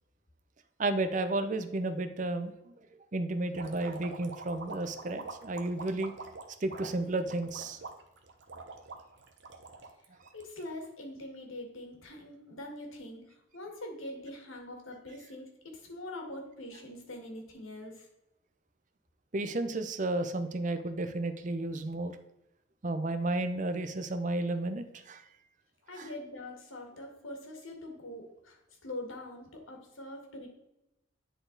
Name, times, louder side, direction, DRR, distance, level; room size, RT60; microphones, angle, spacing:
voice 1, 0.8-2.7 3.1-6.1 6.6-7.8 19.3-22.2 22.8-25.2 26.0-26.1, right 2 dB, 40° right, 9 dB, 0.5 m, -32 dB
sound 1, 3.5-10.8, right 3 dB, 60° right, 0.9 m, -45 dB
voice 2, 10.3-18.1 25.9-30.5, left 1 dB, 85° left, 2 dB, 1.8 m, -43 dB
10.0 x 4.0 x 3.9 m, 0.90 s
head